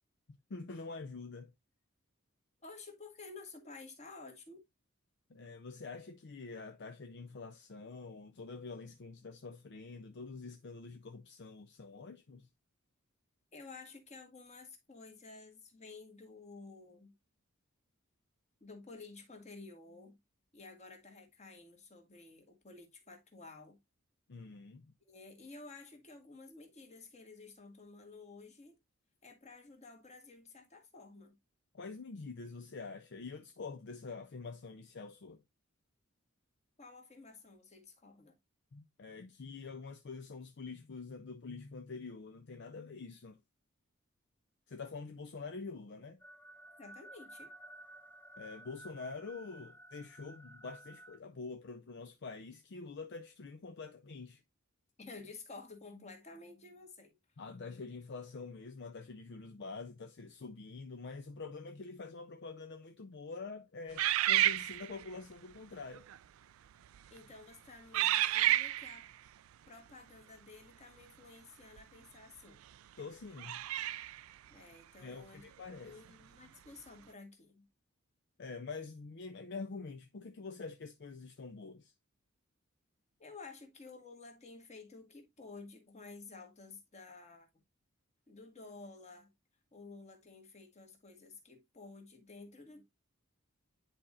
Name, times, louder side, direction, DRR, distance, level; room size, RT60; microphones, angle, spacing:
voice 1, 0.3-1.5 5.3-12.5 24.3-24.9 31.7-35.4 38.7-43.4 44.7-46.2 48.4-54.4 57.4-66.1 73.0-73.6 75.0-76.0 78.4-81.9, left 4 dB, 55° left, 0.5 m, -46 dB
voice 2, 2.6-4.6 13.5-17.1 18.6-20.2 20.5-23.8 25.1-28.8 29.2-31.4 36.8-38.4 46.8-47.5 55.0-57.2 67.1-69.1 69.7-72.6 74.5-75.4 75.8-77.7 83.2-87.5 88.3-89.3 89.7-92.8, left 3 dB, 35° left, 1.7 m, -52 dB
sound 1, 46.2-51.2, right 1 dB, 5° left, 0.5 m, -54 dB
sound 2, 64.0-65.1 65.9-66.2 66.8-67.2 67.9-69.1 71.8-71.9 73.4-74.2, right 14 dB, 80° right, 0.3 m, -30 dB
10.0 x 4.3 x 2.4 m
head